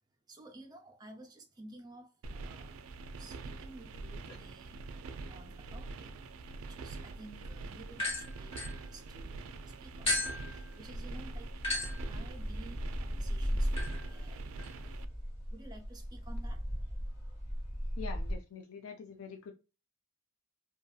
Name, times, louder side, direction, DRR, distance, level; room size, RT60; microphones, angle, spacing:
voice 1, 0.3-2.9 3.2-4.8 5.3-6.2 6.5-9.4 9.8-11.5 12.0-14.5 15.5-16.6, right 2 dB, 20° right, 0.5 m, -53 dB
sound 1, 2.2-15.1, right 3 dB, 90° right, 0.3 m, -45 dB
sound 2, 7.9-9.4 10.1-18.3, left 1 dB, 30° left, 1.2 m, -36 dB
voice 2, 18.0-19.5, left 6 dB, 80° left, 0.4 m, -45 dB
2.8 x 2.6 x 2.3 m
head